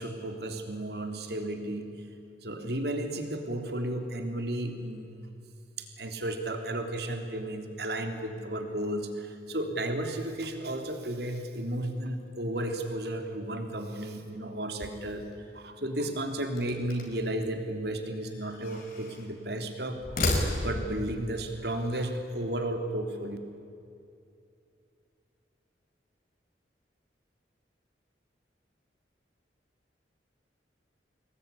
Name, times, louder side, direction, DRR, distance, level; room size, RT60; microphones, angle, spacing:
voice 1, 0.0-1.9 2.4-5.4 5.8-15.2 15.5-20.3 20.6-23.4, right 1 dB, 60° right, 5 dB, 3.3 m, -33 dB
sound 1, 16.6-17.3 18.2-19.3 19.9-21.0, left 2 dB, 50° left, 5.4 m, -32 dB
27.5 x 21.0 x 10.0 m, 2.5 s
head